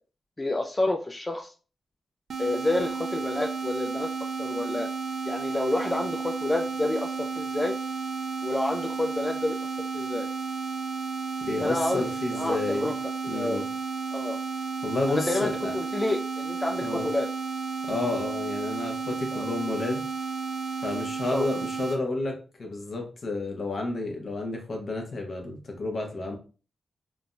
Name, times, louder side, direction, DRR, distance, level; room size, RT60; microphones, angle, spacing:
voice 1, 0.4-1.5 2.4-4.1 4.4-4.9 5.3-7.7 8.4-9.6 9.9-10.3 11.6-13.0 13.2-13.7 14.1-14.4 15.1-17.3 19.3-19.5 21.3-21.5, left 2 dB, 20° left, 3 dB, 0.3 m, -29 dB
sound 1, 2.3-22.0, right 5 dB, 70° right, 0.3 m, -32 dB
voice 2, 11.4-12.9 13.3-13.6 14.8-15.7 16.8-17.1 17.9-20.0 20.8-26.4, left 2 dB, 55° left, 1 dB, 0.9 m, -31 dB
3.3 x 2.1 x 2.5 m, 0.36 s
cardioid pair, 80°, 0 cm